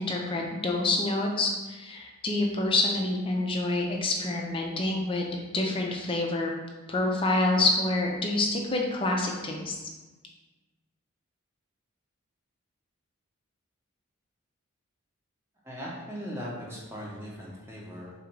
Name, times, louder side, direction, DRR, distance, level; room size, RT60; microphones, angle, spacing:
voice 1, 0.0-6.5 6.9-9.8, left 2 dB, 25° left, 0 dB, 0.5 m, -27 dB
voice 2, 15.6-18.1, equal, 10° right, -5 dB, 0.8 m, -39 dB
4.0 x 2.5 x 4.5 m, 1.2 s
head